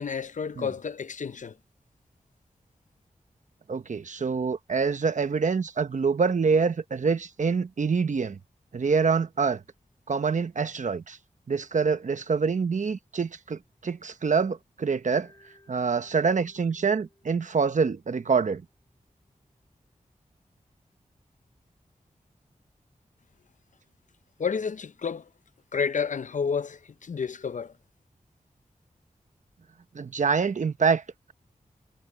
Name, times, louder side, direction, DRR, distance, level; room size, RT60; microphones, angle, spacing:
voice 1, 0.0-1.6 24.4-25.3 25.7-27.7, left 6 dB, 65° left, 0.6 m, -30 dB
voice 2, 3.7-8.4 8.7-9.6 10.1-11.2 11.5-15.3 15.7-18.6 29.9-31.0, right 5 dB, 60° right, 0.9 m, -26 dB
Mallet percussion, 15.1-19.2, left 1 dB, 25° left, 5.7 m, -62 dB
wide cardioid pair, 100°, 14 cm